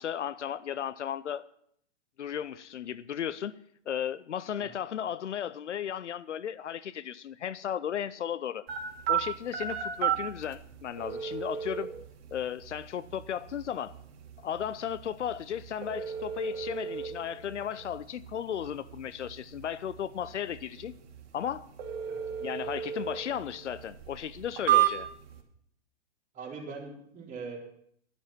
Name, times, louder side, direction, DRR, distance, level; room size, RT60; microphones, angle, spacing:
voice 1, 0.0-1.5 2.2-3.5 3.9-8.6 9.1-11.9 12.3-14.0 14.4-20.9 21.3-21.7 22.4-25.1, left 9 dB, 85° left, 0.7 m, -35 dB
sound 1, 8.7-25.4, right 11 dB, 60° right, 2.8 m, -34 dB
voice 2, 26.3-27.6, right 4 dB, 20° right, 4.3 m, -41 dB
12.0 x 11.5 x 5.8 m
hypercardioid pair, 120°, 34 cm